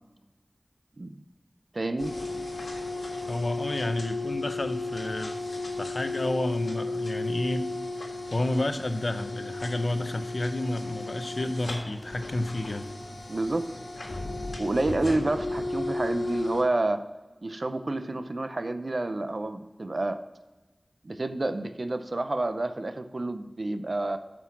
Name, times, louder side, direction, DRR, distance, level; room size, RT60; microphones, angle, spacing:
voice 1, 1.7-2.2 13.3-13.7 14.6-17.1 17.4-20.2 21.0-24.2, right 2 dB, 60° right, 10 dB, 0.6 m, -29 dB
sound 1, 2.0-16.6, left 2 dB, 85° left, 1.6 m, -34 dB
voice 2, 3.3-5.4 5.8-7.7 8.0-12.8, left 1 dB, 60° left, 8 dB, 0.8 m, -30 dB
8.3 x 6.2 x 5.9 m, 1.2 s
wide cardioid pair, 60°, 0 cm